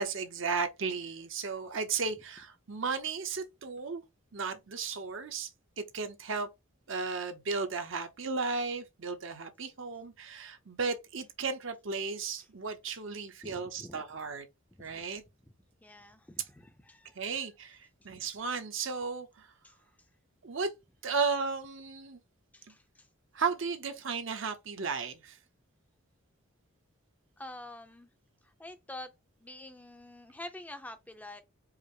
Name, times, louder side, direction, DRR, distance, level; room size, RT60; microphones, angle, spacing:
voice 1, 0.0-4.0 4.3-5.5 5.8-6.5 6.9-14.5 14.8-15.2 17.1-19.5 20.4-20.7 21.0-22.2 23.3-25.4, right 4 dB, 60° right, 0.7 m, -34 dB
voice 2, 13.4-14.0 14.8-14.9 15.8-17.3 19.6-19.7 22.5-23.1 27.4-28.1 28.4-29.1 29.4-31.4, left 1 dB, 5° left, 0.5 m, -47 dB
4.8 x 2.0 x 4.7 m
head